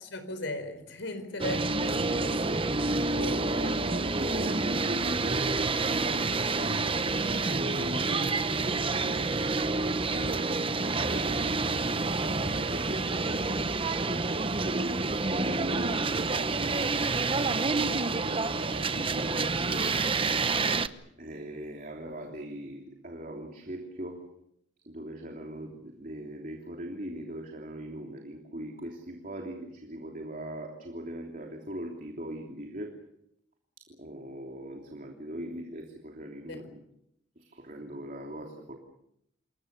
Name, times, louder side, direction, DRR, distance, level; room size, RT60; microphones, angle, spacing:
voice 1, 0.0-3.8 36.5-36.6, left 1 dB, 75° left, 9 dB, 4.7 m, -38 dB
sound 1, 1.4-20.9, right 3 dB, 30° right, 0.9 m, -28 dB
voice 2, 3.0-10.5 11.0-11.6 12.4-13.6 14.0-16.9 17.1-20.0 21.2-24.2 24.9-32.9 34.0-36.8 37.4-38.7, right 1 dB, 45° right, 2 dB, 3.2 m, -39 dB
28.0 x 22.0 x 6.9 m, 0.76 s
head